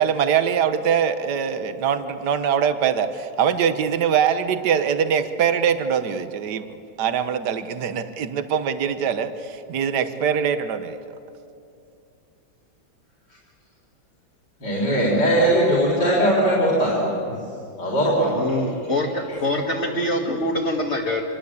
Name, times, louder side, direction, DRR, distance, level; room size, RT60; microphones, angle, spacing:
voice 1, 0.0-6.7 7.0-11.0, right 7 dB, 60° right, 10 dB, 1.7 m, -22 dB
voice 2, 14.6-17.4 17.8-18.6, right 1 dB, 60° left, -4 dB, 4.8 m, -20 dB
voice 3, 18.2-21.2, left 1 dB, 35° left, -1 dB, 2.1 m, -24 dB
26.5 x 22.5 x 8.5 m, 2.5 s
omnidirectional pair, 2.1 m